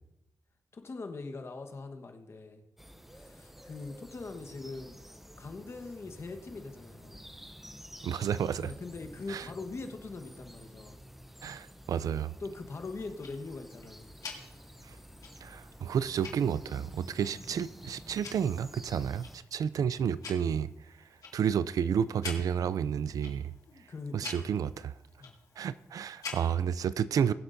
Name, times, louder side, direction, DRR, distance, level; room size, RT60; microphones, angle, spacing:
voice 1, 0.7-2.6 3.1-5.0 5.4-7.2 8.6-11.0 12.4-14.1 23.7-24.5 25.2-25.3, left 3 dB, 45° left, 1.3 m, -42 dB
sound 1, 2.8-19.4, equal, 5° right, 0.7 m, -51 dB
voice 2, 8.0-8.7 9.3-9.5 11.4-12.3 14.8-15.0 15.4-20.7 21.3-23.5 24.1-24.9 25.6-27.3, right 8 dB, 80° right, 0.4 m, -31 dB
Tick-tock, 12.8-26.8, left 5 dB, 80° left, 1.9 m, -49 dB
21.0 x 8.1 x 2.7 m
wide cardioid pair, 110°, 6 cm